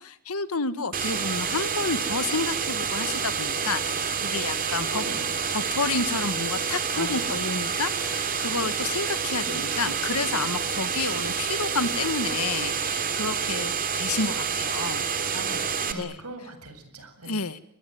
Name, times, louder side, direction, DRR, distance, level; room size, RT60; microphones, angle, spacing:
voice 1, 0.0-5.0 5.5-15.1 15.9-16.2 17.2-17.6, left 4 dB, 80° left, 12 dB, 1.8 m, -30 dB
sound 1, 0.9-15.9, right 6 dB, 40° right, 3.0 m, -28 dB
voice 2, 4.7-5.3 6.9-7.3 15.3-17.4, right 2 dB, 85° right, 8 dB, 7.8 m, -39 dB
28.5 x 22.0 x 9.4 m, 0.72 s
head